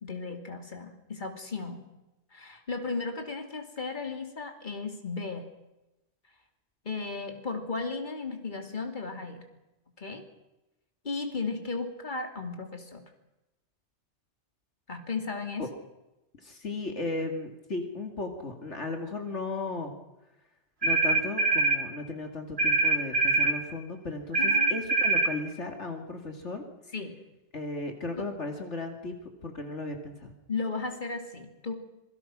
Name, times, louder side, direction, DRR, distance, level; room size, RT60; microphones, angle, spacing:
voice 1, 0.0-1.8 2.3-5.5 6.8-9.4 10.0-10.2 11.0-13.0 14.9-15.7 24.4-24.7 26.9-27.1 28.2-28.3 30.5-31.7, left 4 dB, 40° left, 4 dB, 3.0 m, -35 dB
voice 2, 16.4-19.9 20.8-26.6 27.5-29.1 29.4-30.3, left 2 dB, 75° left, 4 dB, 2.7 m, -35 dB
sound 1, 20.8-21.8 22.6-23.6 24.3-25.3, right 3 dB, 60° right, 3.6 m, -24 dB
27.0 x 22.5 x 6.2 m, 0.99 s
omnidirectional pair, 1.2 m